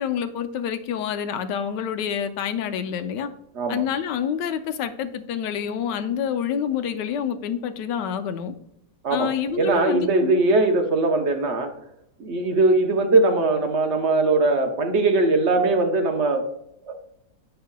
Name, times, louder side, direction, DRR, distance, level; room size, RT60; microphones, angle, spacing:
voice 1, 0.0-3.3 3.7-8.5 9.1-10.4, left 8 dB, 85° left, 9 dB, 1.2 m, -27 dB
voice 2, 9.6-11.7 12.2-16.4 16.9-17.0, right 3 dB, 55° right, 4 dB, 0.9 m, -20 dB
8.6 x 5.5 x 2.2 m, 0.78 s
omnidirectional pair, 1.8 m